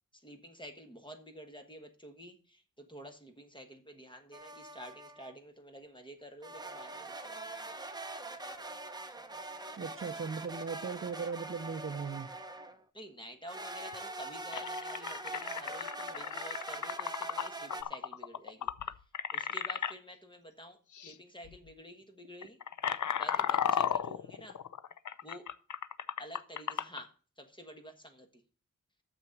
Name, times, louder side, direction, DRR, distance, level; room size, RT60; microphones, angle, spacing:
voice 1, 0.2-7.6 12.9-18.7 19.3-22.6 23.2-24.6 25.2-25.5 26.2-28.3, equal, 15° left, 1.4 m, -50 dB
sound 1, 4.3-5.3 6.4-12.8 13.5-17.8, right 2 dB, 15° right, 0.8 m, -43 dB
voice 2, 9.8-12.3, right 5 dB, 40° right, 0.6 m, -38 dB
sound 2, 13.9-14.0 14.5-19.9 20.9-21.1 21.4-21.7 22.3-27.0, left 8 dB, 65° left, 0.6 m, -35 dB
7.0 x 6.3 x 7.7 m
wide cardioid pair, 150°, 32 cm